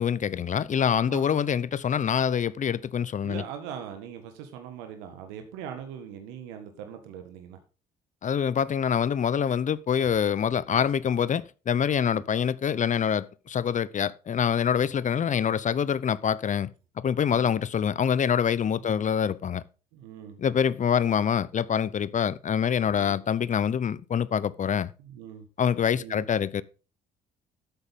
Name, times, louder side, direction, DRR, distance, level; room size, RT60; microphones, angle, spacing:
voice 1, 0.0-3.4 8.2-16.7 17.0-19.6 20.4-24.9 25.6-26.6, left 8 dB, 40° left, 0.8 m, -25 dB
voice 2, 3.2-7.6 12.0-12.2 17.3-17.5 18.8-19.0 19.9-20.4 22.9-23.2 25.0-25.4 26.0-26.2, right 8 dB, 80° right, 1.6 m, -41 dB
12.5 x 8.1 x 3.7 m
hypercardioid pair, 55°, 19 cm